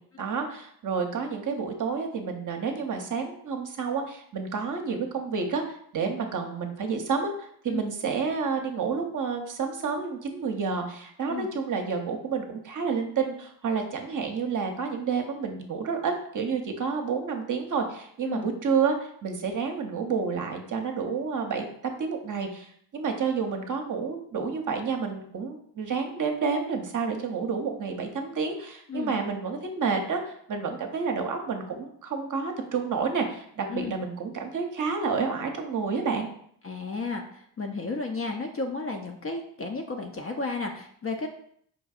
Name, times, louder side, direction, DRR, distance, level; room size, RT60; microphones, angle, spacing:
voice 1, 0.2-5.6 5.9-19.0 19.2-22.7 22.9-36.3, right 5 dB, 40° right, 3 dB, 0.7 m, -29 dB
voice 2, 36.6-41.3, left 3 dB, 30° left, 3 dB, 0.4 m, -33 dB
5.0 x 2.6 x 2.4 m, 0.65 s
supercardioid pair, 60°, 49 cm